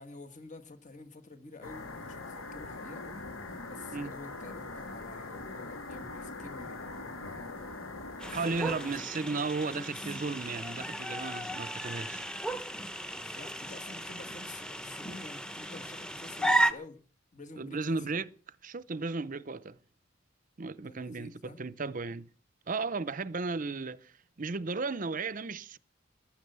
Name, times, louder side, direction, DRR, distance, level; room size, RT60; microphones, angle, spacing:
voice 1, 0.0-3.2 3.6-7.7 8.0-9.8 13.1-17.0 17.3-18.2 20.8-21.6, left 2 dB, 40° left, 1.7 m, -49 dB
sound 1, 1.6-9.0, left 3 dB, 90° left, 2.8 m, -42 dB
sound 2, 8.2-16.7, right 1 dB, 5° left, 1.0 m, -34 dB
voice 2, 8.3-12.3 17.6-18.3 18.6-19.8 20.6-22.3 22.7-24.1 24.4-25.8, right 4 dB, 40° right, 0.6 m, -35 dB
15.0 x 11.5 x 6.8 m
head